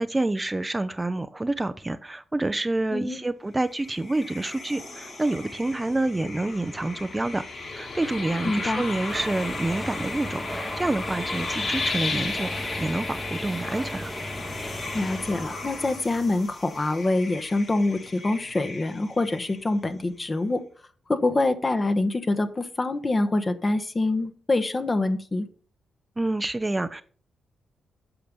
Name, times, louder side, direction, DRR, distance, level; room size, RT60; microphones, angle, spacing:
voice 1, 0.0-7.4 7.7-14.1 26.2-27.0, right 2 dB, 20° right, 12 dB, 0.6 m, -28 dB
sound 1, 3.6-19.9, left 3 dB, 55° left, 4.4 m, -35 dB
voice 2, 8.4-8.8 14.9-20.6 21.1-25.5, left 2 dB, 35° left, 9 dB, 1.3 m, -25 dB
sound 2, 9.1-16.5, equal, 5° left, 1.1 m, -36 dB
8.6 x 5.9 x 5.3 m, 0.43 s
supercardioid pair, 60°, 0 cm